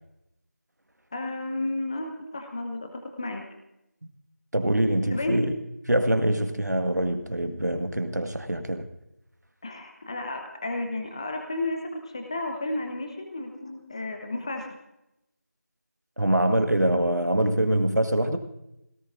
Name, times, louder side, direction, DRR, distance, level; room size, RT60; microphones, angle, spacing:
voice 1, 1.1-3.4 5.1-5.4 9.6-14.7, left 2 dB, 20° left, 4 dB, 0.9 m, -32 dB
voice 2, 4.5-5.5 5.9-8.9 16.2-18.4, right 1 dB, 80° right, 6 dB, 1.7 m, -24 dB
21.0 x 18.0 x 2.6 m, 0.87 s
figure-of-eight pair, 170°, 9 cm